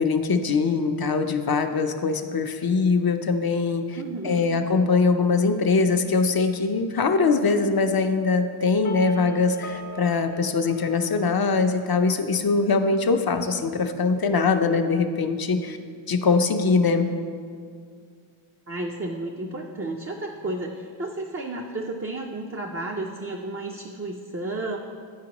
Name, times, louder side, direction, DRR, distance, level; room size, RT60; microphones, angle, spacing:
voice 1, 0.0-4.0 4.2-15.8 16.1-17.1, left 4 dB, 50° left, 7 dB, 0.5 m, -22 dB
voice 2, 3.9-4.5 18.7-24.8, right 2 dB, 30° right, 0 dB, 0.4 m, -32 dB
sound 1, 8.8-11.8, left 2 dB, 90° left, 0.7 m, -38 dB
10.5 x 4.5 x 2.9 m, 2.1 s
wide cardioid pair, 55°, 50 cm